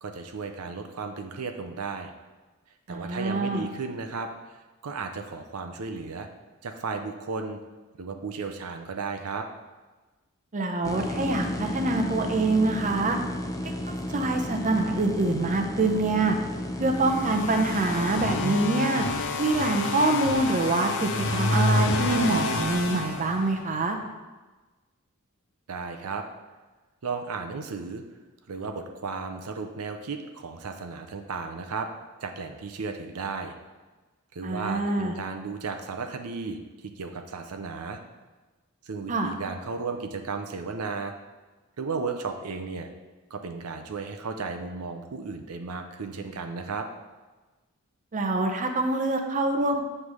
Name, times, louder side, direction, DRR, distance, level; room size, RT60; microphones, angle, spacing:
voice 1, 0.0-2.1 2.9-6.3 6.6-7.6 8.0-9.5 25.7-26.2 27.0-28.0 28.5-31.9 32.2-33.5 34.3-36.6 37.0-38.0 38.8-41.1 41.8-42.9 43.3-46.9, right 4 dB, 80° right, 5 dB, 0.6 m, -34 dB
voice 2, 2.9-3.7 10.5-13.2 13.6-16.4 16.8-19.0 19.4-24.0 34.4-35.1 39.1-39.3 48.1-49.8, right 2 dB, 35° right, 4 dB, 0.6 m, -25 dB
sound 1, 10.8-18.5, left 1 dB, 15° left, 0.6 m, -33 dB
sound 2, 16.9-23.8, left 2 dB, 55° left, 0.6 m, -28 dB
7.3 x 3.3 x 6.1 m, 1.2 s
head